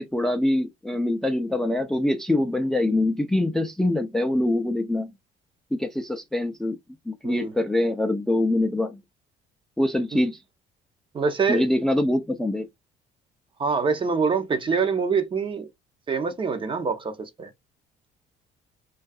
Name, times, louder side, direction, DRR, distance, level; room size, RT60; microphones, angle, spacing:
voice 1, 0.0-5.1 5.7-6.8 7.1-9.0 9.8-10.4 11.5-12.7, left 1 dB, ahead, 0.4 m, -24 dB
voice 2, 7.2-7.5 10.1-10.2 11.1-11.6 13.6-15.7 16.1-17.5, right 5 dB, 30° right, 0.7 m, -25 dB
2.5 x 2.3 x 2.2 m
cardioid pair, 110°, 17 cm